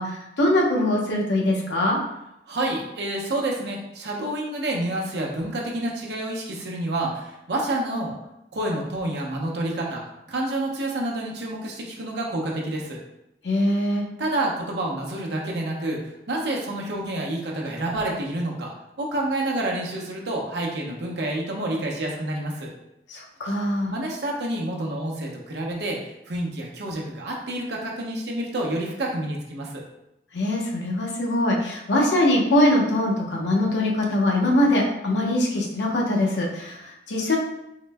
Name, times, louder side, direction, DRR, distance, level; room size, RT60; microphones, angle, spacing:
voice 1, 0.0-2.0 13.4-14.0 23.1-23.9 30.3-37.4, left 1 dB, 85° left, -2 dB, 0.7 m, -22 dB
voice 2, 2.5-8.1 8.5-10.0 10.3-13.0 14.2-18.7 19.0-22.7 23.9-29.8, right 1 dB, 75° right, -1 dB, 0.7 m, -28 dB
3.7 x 2.1 x 3.4 m, 0.85 s
head